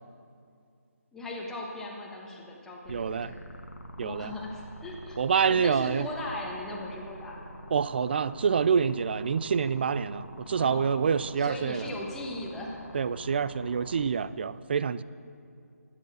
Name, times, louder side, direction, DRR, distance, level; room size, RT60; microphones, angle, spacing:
voice 1, 1.1-3.4 4.0-5.2 5.5-7.4 10.6-10.9 11.4-12.8, left 1 dB, 5° left, -3 dB, 1.4 m, -38 dB
sound 1, 2.8-14.0, equal, 65° left, 1.7 m, -46 dB
voice 2, 2.9-3.3 4.0-4.3 5.2-6.1 7.7-11.8 12.9-15.0, right 6 dB, 40° right, 17 dB, 0.4 m, -27 dB
13.0 x 9.9 x 6.4 m, 2.4 s
figure-of-eight pair, 155°, 9 cm